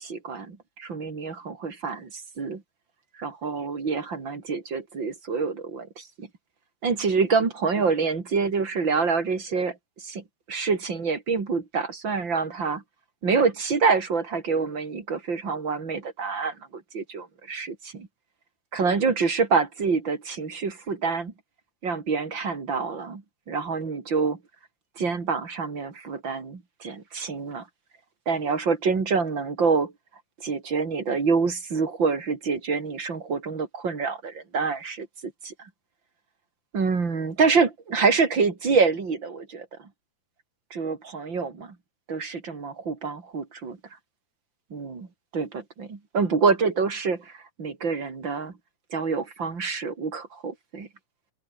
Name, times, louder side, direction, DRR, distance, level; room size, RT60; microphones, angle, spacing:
voice 1, 0.0-2.6 3.2-6.3 6.8-12.8 13.2-18.1 18.7-21.3 21.8-24.4 25.0-27.7 28.3-29.9 30.4-35.7 36.7-39.9 40.7-41.8 42.1-43.8 44.7-45.1 45.3-48.5 48.9-50.9, right 5 dB, 30° right, 3.6 m, -26 dB
omnidirectional pair, 4.3 m